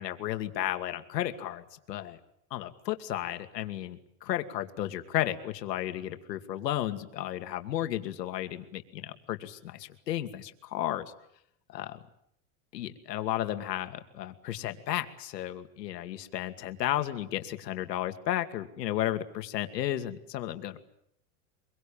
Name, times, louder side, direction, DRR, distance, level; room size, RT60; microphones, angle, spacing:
voice 1, 0.0-2.2 2.5-11.1 11.7-12.0 12.7-20.8, left 13 dB, 85° left, 8 dB, 2.5 m, -33 dB
25.0 x 23.0 x 8.8 m, 0.74 s
supercardioid pair, 155°, 48 cm